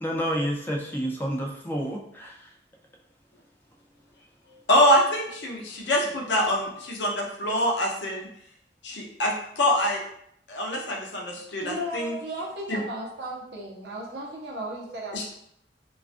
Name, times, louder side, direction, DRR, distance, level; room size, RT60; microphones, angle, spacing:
voice 1, 0.0-2.4, equal, 10° left, 0 dB, 0.3 m, -29 dB
voice 2, 4.7-8.3 8.8-10.0 10.5-12.1 12.7-12.8 15.1-15.2, equal, 90° left, 0 dB, 0.6 m, -25 dB
voice 3, 11.6-15.2, right 1 dB, 65° right, -2 dB, 0.6 m, -35 dB
2.3 x 2.3 x 2.5 m, 0.72 s
head